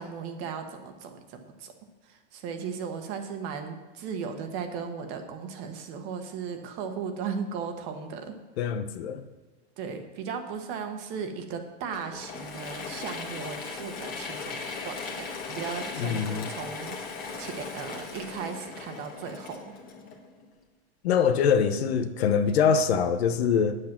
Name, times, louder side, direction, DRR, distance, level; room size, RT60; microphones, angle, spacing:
voice 1, 0.0-1.7 2.0-8.4 9.8-16.9 17.4-19.7, right 6 dB, 35° right, 6 dB, 1.3 m, -36 dB
voice 2, 8.6-9.2 16.0-16.5 21.0-23.7, left 7 dB, 65° left, 9 dB, 1.1 m, -24 dB
Mechanisms / Drill, 11.9-20.5, left 4 dB, 25° left, 1.5 m, -38 dB
9.1 x 8.0 x 6.0 m, 1.3 s
supercardioid pair, 145°, 34 cm